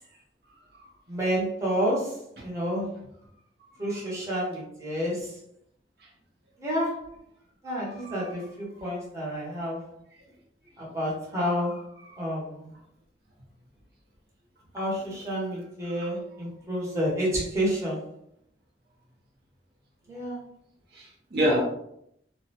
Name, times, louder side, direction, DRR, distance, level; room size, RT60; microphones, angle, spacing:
voice 1, 1.1-2.1 2.4-2.9 3.8-5.3 6.6-7.0 7.6-9.8 10.8-11.8 12.2-12.7 14.7-18.1 20.1-20.4, equal, 15° right, -6 dB, 0.7 m, -29 dB
voice 2, 7.9-8.3 12.0-12.2 16.0-16.1 20.9-21.7, equal, 60° right, -2 dB, 0.6 m, -28 dB
2.4 x 2.0 x 2.7 m, 0.74 s
head